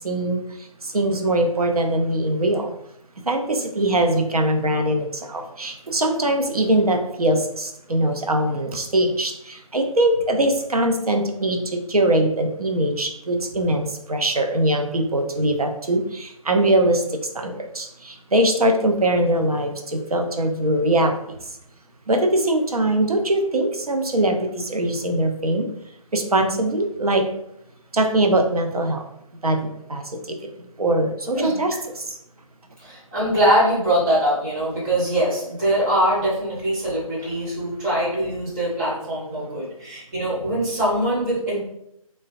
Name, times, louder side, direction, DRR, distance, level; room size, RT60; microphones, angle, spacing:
voice 1, 0.0-0.4 0.8-2.7 3.3-17.0 17.3-21.2 22.1-25.7 26.1-27.2 27.9-29.0 29.4-30.4 30.8-32.0, right 1 dB, 90° right, 3 dB, 0.6 m, -22 dB
voice 2, 32.8-41.6, right 1 dB, 10° right, -8 dB, 0.5 m, -22 dB
3.0 x 2.2 x 2.5 m, 0.78 s
figure-of-eight pair, 150°, 18 cm